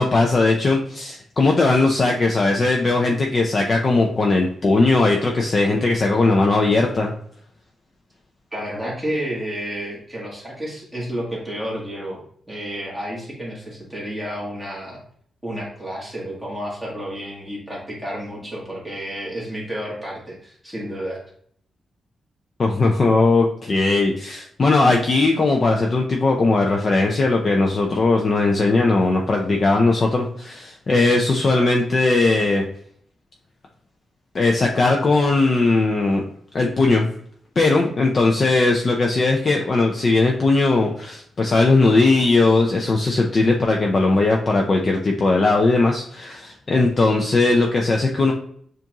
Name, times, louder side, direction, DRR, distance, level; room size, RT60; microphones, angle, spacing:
voice 1, 0.0-7.1 22.6-32.6 34.3-36.2 36.5-37.1 37.6-48.3, left 3 dB, 35° left, 1 dB, 0.5 m, -18 dB
voice 2, 8.5-12.2 12.5-15.0 15.4-21.2, equal, 5° right, -5 dB, 1.4 m, -31 dB
7.0 x 2.5 x 2.9 m, 0.62 s
wide cardioid pair, 165°, 0 cm